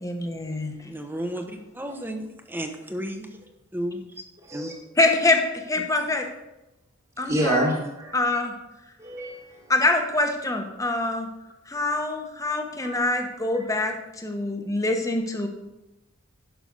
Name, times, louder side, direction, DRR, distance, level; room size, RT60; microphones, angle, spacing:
voice 1, 0.0-0.7 5.0-6.3 7.2-7.7 8.1-8.5 9.7-11.3 11.7-15.5, left 2 dB, 15° left, 4 dB, 1.1 m, -25 dB
voice 2, 0.8-3.4 3.7-4.2 4.5-4.7, equal, 10° right, 5 dB, 1.0 m, -33 dB
voice 3, 7.2-8.2 9.0-9.7 12.8-13.0, right 1 dB, 30° right, -5 dB, 1.8 m, -28 dB
11.5 x 5.9 x 5.4 m, 0.96 s
head